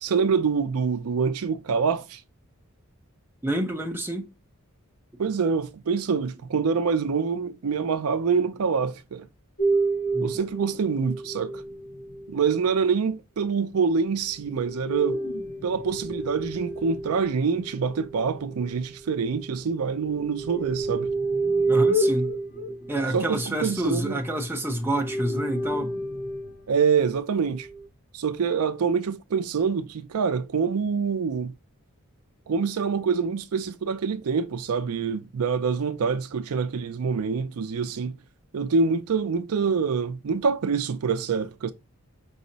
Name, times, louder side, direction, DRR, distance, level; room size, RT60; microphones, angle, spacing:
voice 1, 0.0-2.2 5.2-9.3 10.2-11.6 12.3-15.2 15.6-21.1 23.1-24.2 26.7-27.7 28.1-31.5 32.5-38.2 38.5-41.7, right 5 dB, 80° right, 0.4 m, -25 dB
voice 2, 3.4-4.3 10.1-10.4 21.7-26.0, right 1 dB, 10° right, 0.7 m, -28 dB
sound 1, 9.6-12.8 14.5-19.6 20.0-24.4 24.8-26.6 27.4-27.9, right 2 dB, 40° left, 0.8 m, -29 dB
5.4 x 2.0 x 3.9 m
head